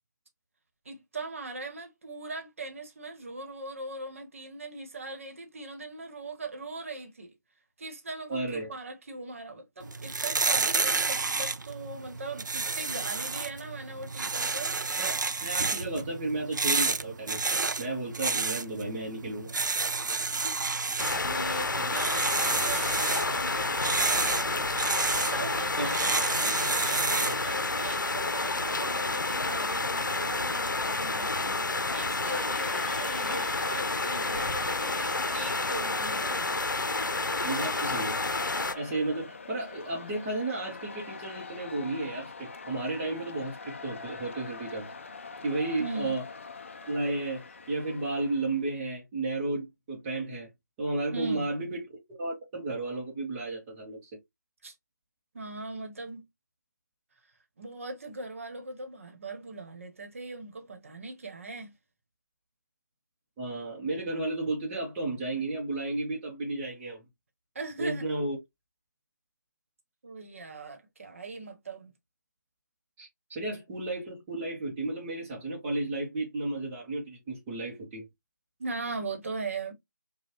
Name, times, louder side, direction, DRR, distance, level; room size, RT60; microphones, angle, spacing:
voice 1, 0.8-7.3 7.8-14.8 20.3-20.6 21.2-24.8 25.1-36.4 45.8-46.1 51.1-51.5 54.6-54.7 55.3-56.2 57.6-61.7 67.5-68.1 70.0-71.9 78.6-79.7, right 3 dB, 45° right, 1.1 m, -40 dB
voice 2, 8.3-8.7 15.0-17.5 17.8-19.5 21.8-21.9 25.8-26.1 37.4-38.2 38.7-44.9 45.4-46.2 46.9-47.4 47.7-50.5 50.8-51.8 52.1-54.1 63.4-67.0 67.8-68.4 73.0-73.1 73.3-78.0, right 2 dB, 10° right, 0.8 m, -33 dB
sound 1, 9.8-27.4, right 4 dB, 75° right, 0.5 m, -30 dB
sound 2, 21.0-38.7, left 3 dB, 80° left, 0.7 m, -30 dB
sound 3, 32.5-48.7, left 4 dB, 40° left, 0.5 m, -44 dB
5.3 x 2.3 x 2.9 m
figure-of-eight pair, 165°, 10 cm